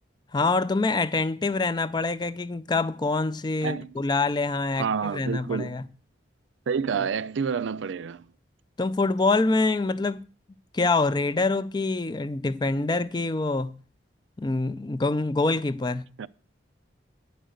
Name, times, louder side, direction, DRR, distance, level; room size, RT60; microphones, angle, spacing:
voice 1, 0.3-5.8 8.8-10.3 10.7-13.8 14.4-16.1, left 3 dB, 25° left, 0.4 m, -25 dB
voice 2, 4.8-5.8 6.7-8.3 16.2-16.3, right 6 dB, 80° right, 0.4 m, -28 dB
10.0 x 5.1 x 7.7 m
head